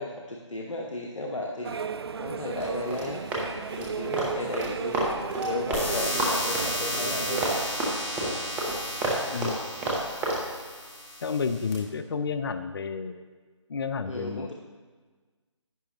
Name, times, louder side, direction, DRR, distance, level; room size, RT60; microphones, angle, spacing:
voice 1, 0.0-1.8 2.2-3.2 3.8-5.1 5.4-7.4 14.1-14.5, left 1 dB, 75° left, -1 dB, 1.1 m, -34 dB
sound 1, 1.6-7.7, right 6 dB, 55° right, 0.4 m, -35 dB
Run, 2.6-5.9 6.1-10.4, right 2 dB, 10° right, 1.0 m, -30 dB
sound 2, 5.7-11.7, left 1 dB, 15° left, 1.5 m, -33 dB
voice 2, 11.2-13.2 13.7-14.5, left 5 dB, 50° left, 10 dB, 0.5 m, -30 dB
11.0 x 9.6 x 3.0 m, 1.4 s
figure-of-eight pair, 150°, 16 cm